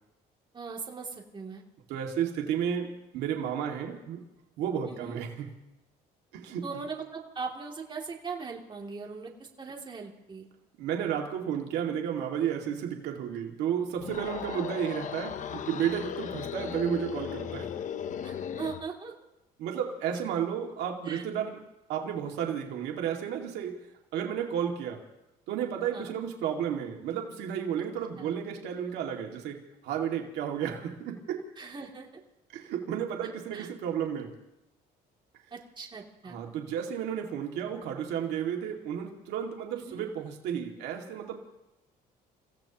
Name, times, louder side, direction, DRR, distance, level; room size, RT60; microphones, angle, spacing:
voice 1, 0.5-1.6 4.9-5.2 6.6-10.5 14.5-14.7 18.2-19.1 21.1-21.2 25.9-26.1 28.2-28.3 31.6-32.2 33.5-33.7 35.5-36.4 39.8-40.0, right 5 dB, 30° right, -1 dB, 2.7 m, -40 dB
voice 2, 1.9-4.2 4.6-5.5 6.3-6.6 10.8-17.7 19.6-21.6 21.9-23.8 24.1-25.0 25.5-31.4 32.5-34.3 36.2-41.5, right 8 dB, 85° right, 1 dB, 2.1 m, -32 dB
sound 1, 13.9-18.9, left 8 dB, 50° left, 0.8 m, -37 dB
30.0 x 16.0 x 3.0 m, 0.93 s
cardioid pair, 110°, 17 cm